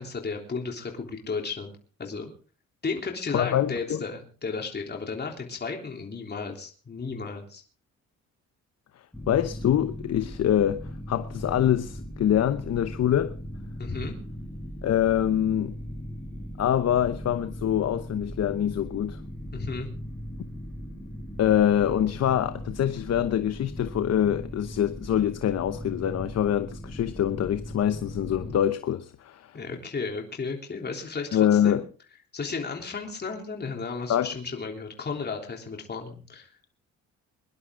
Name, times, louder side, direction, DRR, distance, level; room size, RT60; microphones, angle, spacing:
voice 1, 0.0-1.7 2.0-2.3 2.8-7.6 13.8-14.2 19.5-19.9 29.5-31.8 32.3-36.5, left 4 dB, 35° left, 3.5 m, -34 dB
voice 2, 3.3-4.0 9.3-13.3 14.8-15.8 16.6-19.2 21.4-29.6 31.3-31.8 34.1-34.3, left 10 dB, 55° left, 0.9 m, -25 dB
sound 1, 9.1-28.6, equal, 5° left, 6.5 m, -38 dB
23.0 x 11.5 x 3.8 m
cardioid pair, 90°, 30 cm